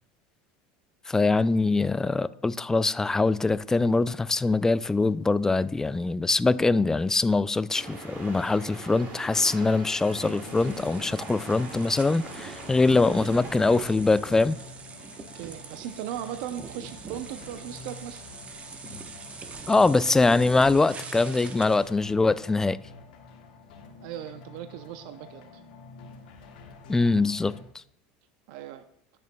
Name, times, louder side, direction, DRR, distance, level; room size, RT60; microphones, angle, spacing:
voice 1, 1.1-14.6 19.7-22.8 26.9-27.8, left 3 dB, 10° left, 0.3 m, -23 dB
sound 1, 7.7-13.8, right 3 dB, 45° right, 2.3 m, -42 dB
sound 2, 9.9-21.9, right 5 dB, 30° right, 1.0 m, -44 dB
action game music by kk, 10.0-27.6, left 4 dB, 90° left, 1.2 m, -48 dB
voice 2, 12.9-13.5 15.3-18.2 24.0-25.5 28.5-28.8, right 11 dB, 70° right, 0.5 m, -38 dB
19.0 x 6.7 x 2.2 m
supercardioid pair, 110°, 4 cm